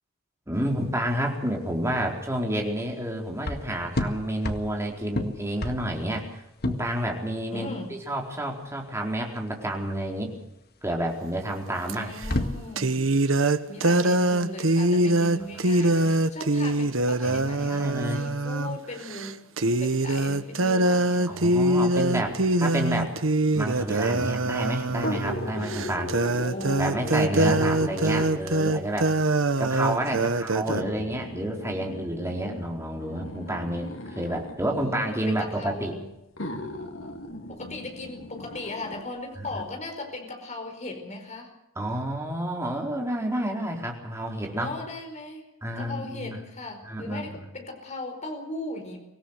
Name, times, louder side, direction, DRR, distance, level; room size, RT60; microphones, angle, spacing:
voice 1, 0.5-7.7 8.1-10.3 10.8-12.1 17.2-18.2 21.3-23.1 23.5-26.1 26.8-29.1 29.6-35.9 39.5-39.6 41.8-44.7 45.6-46.4 46.9-47.5, right 1 dB, 15° right, 1 dB, 4.3 m, -30 dB
sound 1, 0.6-18.8, left 1 dB, 55° left, 1.9 m, -36 dB
voice 2, 7.5-7.9 11.9-13.1 13.7-21.5 26.2-27.2 34.6-36.1 37.5-41.5 44.6-45.4 45.8-49.0, left 2 dB, 35° left, 4 dB, 4.8 m, -38 dB
sound 2, 11.9-12.0 12.8-18.8 19.1-19.3 19.6-30.8, right 2 dB, 80° right, 1.2 m, -23 dB
sound 3, 24.9-28.6 29.5-29.6 30.7-34.6 35.6-35.7 36.4-39.0 39.5-39.6, left 1 dB, 90° left, 3.0 m, -37 dB
25.0 x 17.5 x 6.6 m, 0.90 s
head